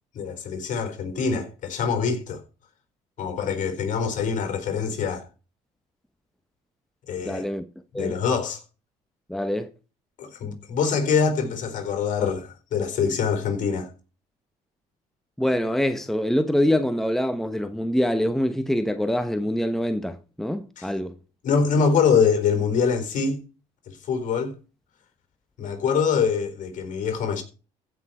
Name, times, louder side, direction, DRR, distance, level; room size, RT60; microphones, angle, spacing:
voice 1, 0.1-2.4 3.2-5.3 7.1-7.4 7.9-8.6 10.2-13.9 20.8-20.9 21.4-23.4 23.9-24.6 25.6-27.4, left 6 dB, 55° left, 4.4 m, -24 dB
voice 2, 7.3-7.6 7.9-8.2 9.3-9.7 15.4-21.1, equal, ahead, 1.0 m, -25 dB
15.5 x 6.2 x 4.4 m
cardioid pair, 95°, 15 cm